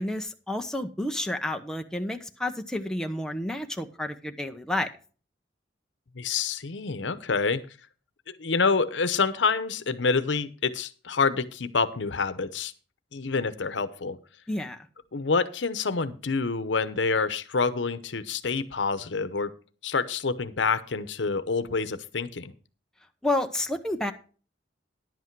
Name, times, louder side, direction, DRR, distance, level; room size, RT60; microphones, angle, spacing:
voice 1, 0.0-4.9 14.5-14.8 23.2-24.1, left 1 dB, 5° left, 4 dB, 0.8 m, -30 dB
voice 2, 6.1-7.6 8.3-12.7 13.1-14.2 15.1-19.5 19.8-22.5, left 4 dB, 90° left, 12 dB, 0.8 m, -27 dB
11.0 x 8.2 x 4.6 m, 0.38 s
head